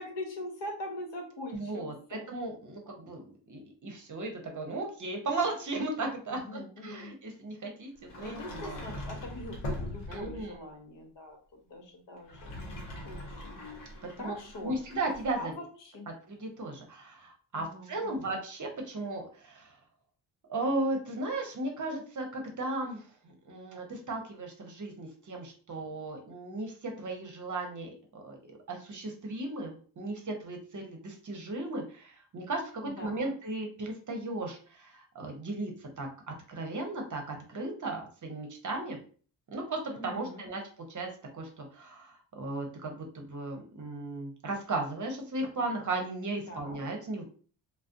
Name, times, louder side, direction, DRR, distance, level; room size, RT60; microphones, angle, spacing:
voice 1, 0.0-2.3 6.3-7.1 8.2-11.4 11.7-12.8 13.1-14.7 15.4-16.1 17.5-18.3 32.8-33.3 39.9-40.4 46.5-46.8, left 1 dB, 60° left, 0 dB, 1.0 m, -43 dB
voice 2, 1.5-7.9 8.2-8.8 10.1-10.5 14.0-14.3 14.6-15.5 16.1-19.7 20.5-39.0 39.5-40.6 40.9-47.3, right 2 dB, 40° right, 2 dB, 0.8 m, -36 dB
Sliding door, 8.0-10.5 12.2-15.3, left 1 dB, 80° left, 0.8 m, -41 dB
2.4 x 2.1 x 2.5 m, 0.42 s
supercardioid pair, 45°, 49 cm